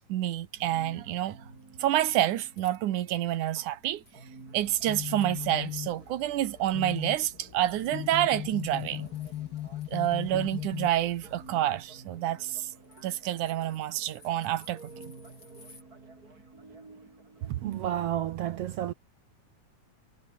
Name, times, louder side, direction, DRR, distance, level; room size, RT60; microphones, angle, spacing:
voice 1, 0.1-1.4 1.8-4.0 4.5-9.1 9.9-12.7 13.0-15.1, right 13 dB, 85° right, 2.7 m, -28 dB
sound 1, 0.6-18.2, right 3 dB, 30° right, 4.6 m, -52 dB
sound 2, 1.6-3.6 4.0-5.9 6.2-15.8, left 3 dB, 35° left, 7.4 m, -59 dB
sound 3, 4.6-11.5, left 13 dB, 90° left, 1.1 m, -38 dB
voice 2, 17.5-18.9, right 11 dB, 70° right, 1.5 m, -31 dB
omnidirectional pair, 3.5 m